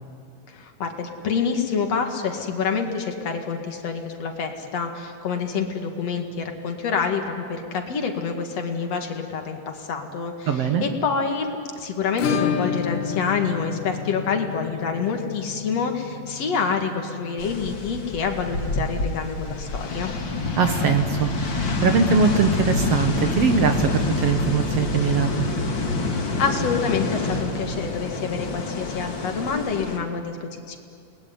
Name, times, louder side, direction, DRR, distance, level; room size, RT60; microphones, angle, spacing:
voice 1, 0.5-20.1 26.4-30.8, left 5 dB, 55° left, 4 dB, 3.0 m, -27 dB
voice 2, 10.5-10.8 20.6-25.5, right 6 dB, 60° right, 6 dB, 1.9 m, -22 dB
Acoustic guitar / Strum, 12.2-20.8 21.0-21.1 21.4-21.5 21.9-22.0 24.0-24.1 25.3-25.4, left 7 dB, 90° left, 2.8 m, -32 dB
sound 1, 17.4-30.0, left 3 dB, 40° left, 2.6 m, -27 dB
29.5 x 20.5 x 9.6 m, 2.3 s
omnidirectional pair, 3.8 m